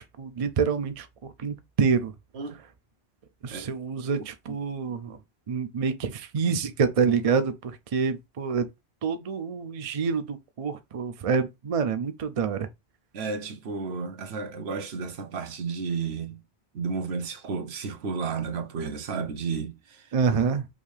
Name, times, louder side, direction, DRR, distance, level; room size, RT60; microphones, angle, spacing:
voice 1, 0.2-1.1 1.4-2.1 3.4-5.2 5.5-8.7 9.0-12.7 20.1-20.7, right 6 dB, 50° right, 0.5 m, -27 dB
voice 2, 13.1-16.4 16.7-20.1, right 5 dB, 85° right, 1.1 m, -32 dB
5.3 x 2.7 x 3.2 m
omnidirectional pair, 1.1 m